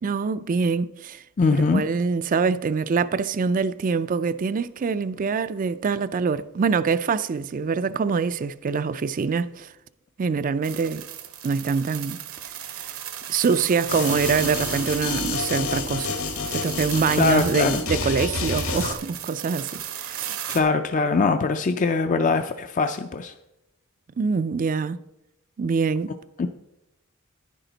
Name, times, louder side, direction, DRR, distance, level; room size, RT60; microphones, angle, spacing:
voice 1, 0.0-1.2 1.5-9.7 10.2-11.1 11.4-12.2 12.8-12.9 13.3-16.2 16.5-20.4 24.2-25.0 25.6-26.1, right 5 dB, 40° right, 0.3 m, -24 dB
voice 2, 1.4-1.8 17.2-17.8 20.5-23.3 26.4-26.5, left 4 dB, 35° left, 0.4 m, -22 dB
Sand Various, 10.6-20.6, right 10 dB, 75° right, 1.0 m, -36 dB
sound 1, 13.9-18.9, left 4 dB, 65° left, 1.3 m, -29 dB
10.5 x 10.0 x 4.0 m
head